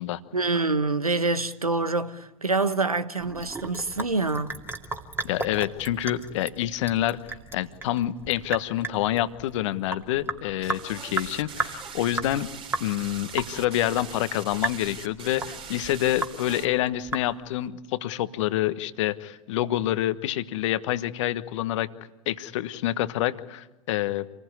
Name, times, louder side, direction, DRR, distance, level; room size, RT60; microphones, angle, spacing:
voice 1, 0.3-4.5, right 3 dB, 90° right, 1.2 m, -26 dB
Sink (filling or washing) / Drip, 3.2-17.7, right 3 dB, 15° right, 2.4 m, -35 dB
voice 2, 5.2-12.5 12.8-21.9 22.3-24.3, left 13 dB, 55° left, 1.3 m, -27 dB
sound 1, 10.6-16.7, right 6 dB, 30° right, 3.1 m, -42 dB
27.5 x 20.0 x 9.7 m
figure-of-eight pair, 85°, 18 cm